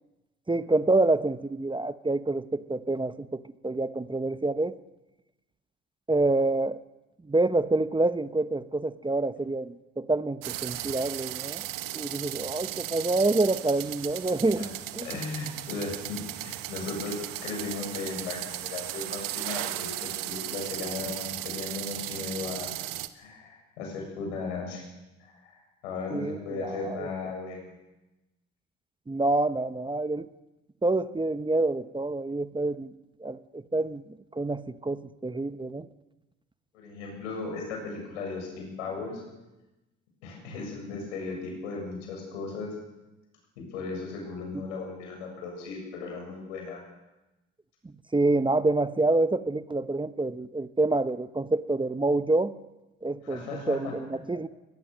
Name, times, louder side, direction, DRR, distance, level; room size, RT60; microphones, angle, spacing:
voice 1, 0.5-4.8 6.1-6.8 7.2-11.7 11.9-15.1 26.1-27.1 29.1-30.3 30.8-32.9 33.2-34.0 34.3-35.9 44.5-44.6 47.8-52.5 53.0-54.5, right 2 dB, 15° right, 13 dB, 1.0 m, -27 dB
sound 1, 10.4-23.1, right 15 dB, 65° right, 1.3 m, -36 dB
voice 2, 15.0-22.9 23.1-24.8 25.2-27.7 36.7-39.2 40.2-42.7 43.6-46.8 53.2-53.9, left 4 dB, 85° left, 1 dB, 7.6 m, -36 dB
22.5 x 21.0 x 6.5 m, 1.0 s
hypercardioid pair, 60°, 35 cm